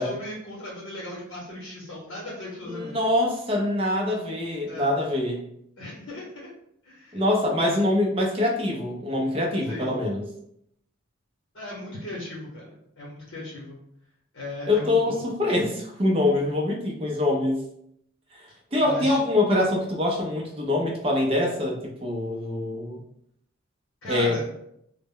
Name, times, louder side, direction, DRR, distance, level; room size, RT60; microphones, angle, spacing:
voice 1, 0.0-3.0 4.7-5.0 5.8-6.5 6.8-7.2 9.7-10.0 11.5-13.8 14.3-15.3 18.5-19.2 24.0-24.4, left 1 dB, 70° left, -5 dB, 0.8 m, -37 dB
voice 2, 2.7-5.4 7.1-10.2 14.7-17.6 18.3-18.4 18.7-23.0 24.1-24.4, left 1 dB, 30° right, -1 dB, 0.5 m, -24 dB
2.0 x 2.0 x 3.6 m, 0.73 s
head